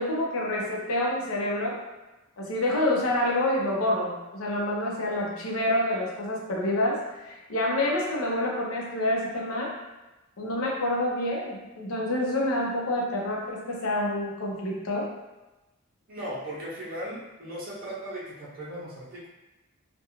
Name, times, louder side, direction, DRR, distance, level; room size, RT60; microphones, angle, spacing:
voice 1, 0.0-1.8 2.4-9.7 10.4-15.1, left 1 dB, 90° left, -2 dB, 0.6 m, -27 dB
voice 2, 16.1-19.3, equal, 45° right, -8 dB, 0.6 m, -37 dB
2.4 x 2.2 x 2.9 m, 1.1 s
head